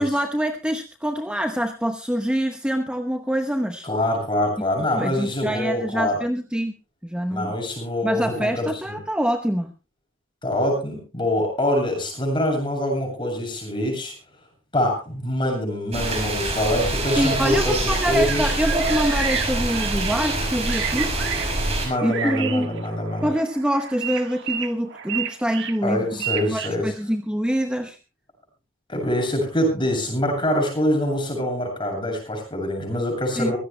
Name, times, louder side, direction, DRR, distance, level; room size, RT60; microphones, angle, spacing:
voice 1, 0.0-3.9 4.9-6.7 7.0-7.6 8.0-9.7 17.2-21.2 22.0-22.8 23.2-26.0 26.5-28.0 33.4-33.5, equal, 5° right, 5 dB, 0.9 m, -25 dB
voice 2, 3.8-6.2 7.3-9.0 10.4-14.1 14.7-18.5 21.8-23.3 25.8-26.9 28.9-33.6, left 1 dB, 25° left, 2 dB, 7.5 m, -24 dB
sound 1, 15.9-21.9, right 2 dB, 30° right, 5.7 m, -25 dB
sound 2, 17.9-26.7, right 8 dB, 60° right, 1.5 m, -32 dB
24.0 x 16.5 x 2.2 m, 0.31 s
head